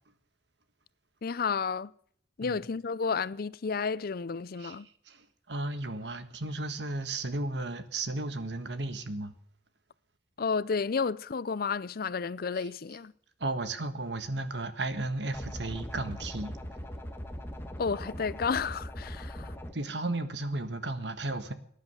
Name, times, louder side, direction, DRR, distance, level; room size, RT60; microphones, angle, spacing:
voice 1, 1.2-1.9 2.4-4.9 10.4-13.1 17.8-19.5, left 5 dB, 55° left, 0.5 m, -31 dB
voice 2, 4.6-9.3 12.5-13.0 13.4-16.6 19.7-21.5, right 2 dB, 70° right, 1.6 m, -34 dB
sound 1, 15.3-19.7, equal, 15° left, 1.6 m, -40 dB
19.0 x 10.5 x 6.8 m
head